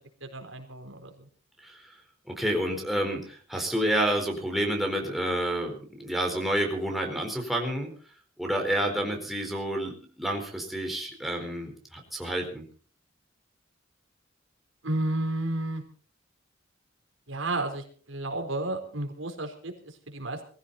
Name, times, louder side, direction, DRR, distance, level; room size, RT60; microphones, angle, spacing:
voice 1, 0.2-1.3 14.8-15.8 17.3-20.5, right 2 dB, 80° right, 5 dB, 4.2 m, -32 dB
voice 2, 1.6-2.0 2.3-7.9 8.4-12.6, right 1 dB, ahead, 1 dB, 4.2 m, -29 dB
21.5 x 15.0 x 4.2 m, 0.42 s
head